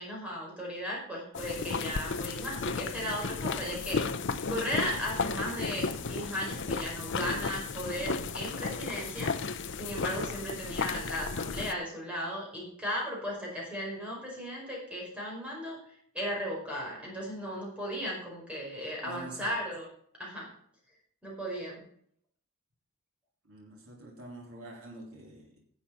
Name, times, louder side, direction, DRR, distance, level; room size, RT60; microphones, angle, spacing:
voice 1, 0.0-4.0 4.5-9.3 9.8-19.9 20.2-20.5 21.2-21.8, equal, 5° right, -4 dB, 5.0 m, -36 dB
sound 1, 1.3-11.7, left 4 dB, 55° left, 0.6 m, -34 dB
voice 2, 19.0-19.6 23.5-25.6, right 1 dB, 65° right, -2 dB, 3.3 m, -45 dB
11.5 x 7.4 x 5.7 m, 0.63 s
head